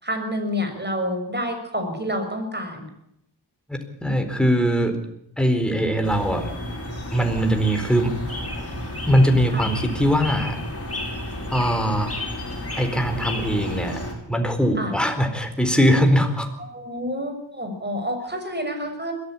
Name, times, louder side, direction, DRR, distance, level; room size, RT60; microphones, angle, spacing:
voice 1, 0.0-2.9 9.5-9.6 14.8-14.9 16.6-19.1, equal, 25° right, 5 dB, 6.3 m, -28 dB
voice 2, 3.7-5.0 5.4-6.5 7.1-8.1 9.1-10.6 11.5-12.1 12.8-14.0 14.3-16.5, equal, ahead, 5 dB, 4.3 m, -21 dB
sound 1, 6.0-14.1, left 1 dB, 35° left, 6.0 m, -31 dB
22.0 x 14.5 x 8.7 m, 0.76 s
wide cardioid pair, 70°, 43 cm